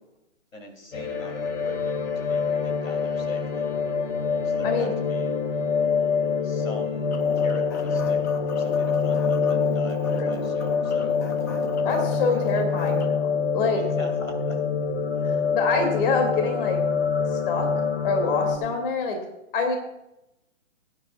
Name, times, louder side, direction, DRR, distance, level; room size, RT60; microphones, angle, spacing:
voice 1, 0.5-3.7 4.4-5.4 6.4-11.1 12.3-12.4 13.7-14.6, left 2 dB, 85° left, 5 dB, 3.0 m, -42 dB
sound 1, 0.9-18.6, left 5 dB, 65° left, 2.3 m, -25 dB
voice 2, 4.6-4.9 10.1-10.4 11.8-13.8 15.2-16.8 17.3-17.7 18.0-19.2 19.5-19.8, left 4 dB, 45° left, 5 dB, 2.7 m, -26 dB
sound 2, 7.1-13.1, left 5 dB, 15° left, 0.4 m, -36 dB
20.5 x 9.7 x 2.4 m, 0.88 s
hypercardioid pair, 135°, 38 cm